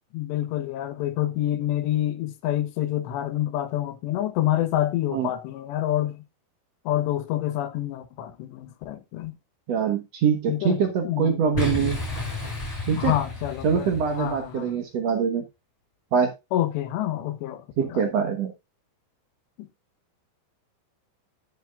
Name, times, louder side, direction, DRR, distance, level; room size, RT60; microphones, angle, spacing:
voice 1, 0.1-6.2 6.8-9.4 10.5-11.9 13.0-14.7 16.5-18.1 19.6-19.7, left 13 dB, 80° left, 3.3 m, -28 dB
voice 2, 9.7-12.0 12.9-13.1 13.6-15.4 16.1-16.3 17.8-18.5, right 6 dB, 85° right, 1.4 m, -24 dB
Boom, 11.5-14.5, left 3 dB, 10° left, 6.0 m, -32 dB
11.0 x 11.0 x 2.4 m
omnidirectional pair, 5.0 m